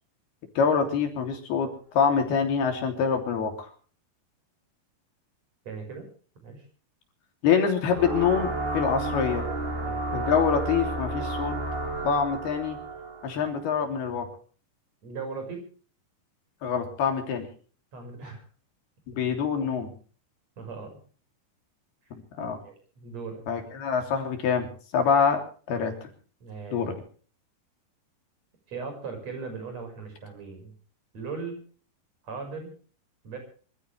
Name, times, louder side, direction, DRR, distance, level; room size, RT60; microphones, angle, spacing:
voice 1, 0.6-1.7 1.9-3.7 7.4-9.5 10.1-11.6 12.0-12.8 13.2-14.3 16.6-17.5 19.1-19.9 22.1-22.6 23.5-24.7 24.9-25.4 25.7-26.1 26.7-26.9, left 6 dB, 90° left, 4 dB, 5.2 m, -25 dB
voice 2, 5.7-6.1 6.4-6.6 9.7-10.0 15.0-15.6 17.9-18.4 20.6-21.0 22.5-23.4 26.4-26.8 28.7-30.7 31.1-31.6 32.2-32.7 33.2-33.4, right 4 dB, 45° right, 5 dB, 7.0 m, -38 dB
sound 1, 7.9-13.9, right 2 dB, 75° right, 6.4 m, -32 dB
26.0 x 15.0 x 3.5 m, 0.41 s
omnidirectional pair, 4.4 m